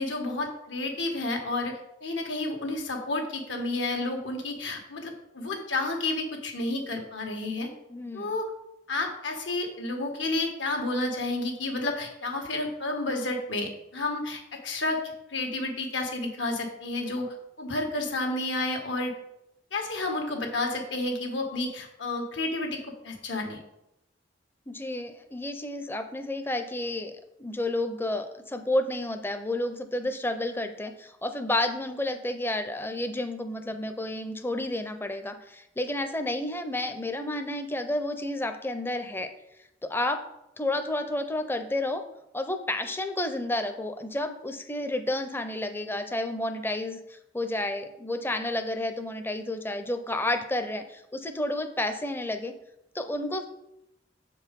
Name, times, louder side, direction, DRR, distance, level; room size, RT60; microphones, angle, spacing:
voice 1, 0.0-7.7 8.1-8.5 8.9-15.0 15.3-17.3 17.6-19.1 19.7-22.8 23.0-23.6, left 2 dB, 80° left, 2 dB, 1.5 m, -31 dB
voice 2, 7.9-8.4 24.7-27.1 27.4-39.3 39.8-40.2 40.6-42.0 42.3-52.5 52.9-53.5, left 1 dB, 10° left, 8 dB, 0.6 m, -31 dB
7.3 x 4.7 x 5.2 m, 0.84 s
head